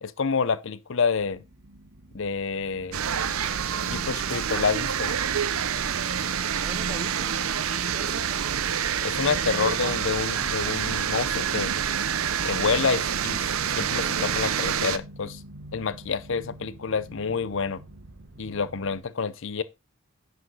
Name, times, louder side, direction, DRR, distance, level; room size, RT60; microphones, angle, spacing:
voice 1, 0.0-1.4 2.1-3.0 3.8-5.1 9.0-11.7 12.4-13.4 13.8-15.4 15.7-17.8 18.4-19.6, left 5 dB, 60° left, 0.6 m, -28 dB
sound 1, 1.2-19.0, right 1 dB, 55° right, 1.5 m, -47 dB
sound 2, 2.9-15.0, right 8 dB, 80° right, 0.7 m, -27 dB
voice 2, 6.5-8.5 18.9-19.0, right 2 dB, 30° right, 0.8 m, -42 dB
9.8 x 5.1 x 4.0 m
head